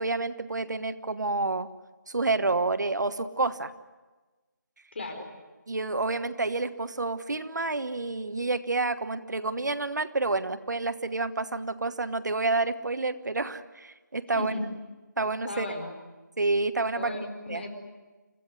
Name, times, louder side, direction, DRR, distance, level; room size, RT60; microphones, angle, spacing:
voice 1, 0.0-1.7 2.1-3.7 5.7-14.5 15.2-15.7 16.4-17.2 17.5-17.6, right 3 dB, 65° right, 11 dB, 1.3 m, -29 dB
voice 2, 4.9-5.2 14.3-14.6 15.5-15.9 16.9-17.8, left 2 dB, 35° left, 4 dB, 4.6 m, -35 dB
29.5 x 16.0 x 9.6 m, 1.3 s
figure-of-eight pair, 175°, 10 cm